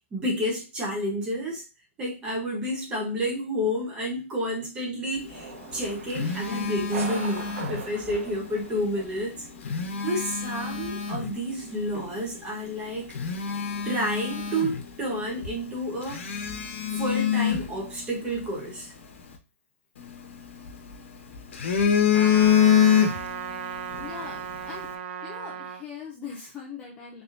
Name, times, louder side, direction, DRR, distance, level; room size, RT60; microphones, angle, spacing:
voice 1, 0.1-1.6 2.0-9.4 10.0-13.1 13.8-16.2 16.9-18.9, equal, 10° right, 1.0 m, -30 dB
sound 1, 5.3-9.4, right 4 dB, 75° right, 1.0 m, -40 dB
Telephone, 5.6-8.2 9.4-11.3 11.9-12.1 12.7-12.8 13.1-15.2 15.4-15.6 16.1-18.4 20.0-21.0 21.3-23.5 23.8-24.0, left 8 dB, 55° left, 1.1 m, -25 dB
Trumpet, 22.1-25.8, right 8 dB, 50° right, 0.6 m, -35 dB
voice 2, 24.0-24.9 25.2-27.2, left 6 dB, 10° left, 0.5 m, -40 dB
3.9 x 3.5 x 2.7 m
hypercardioid pair, 175°, 8 cm